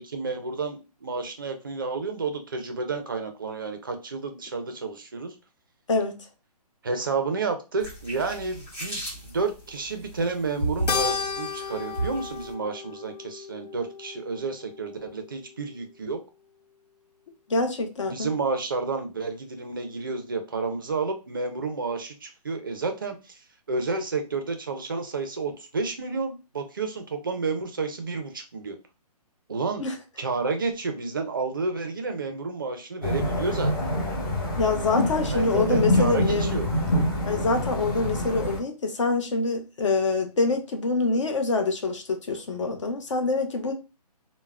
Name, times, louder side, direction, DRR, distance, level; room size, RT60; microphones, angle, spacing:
voice 1, 0.1-5.3 6.8-16.2 18.0-23.4 23.7-28.8 29.5-29.9 30.2-33.7 35.3-36.7, right 4 dB, 35° right, 0.4 m, -30 dB
sound 1, 7.8-12.5, right 2 dB, 10° left, 1.4 m, -34 dB
Keyboard (musical), 10.9-15.5, left 5 dB, 90° left, 0.6 m, -33 dB
voice 2, 17.5-18.3 29.8-29.9 34.6-36.5 37.3-43.7, left 3 dB, 50° left, 0.6 m, -25 dB
sound 2, 33.0-38.6, left 1 dB, 35° left, 0.9 m, -26 dB
3.3 x 2.0 x 2.3 m
hypercardioid pair, 170°, 21 cm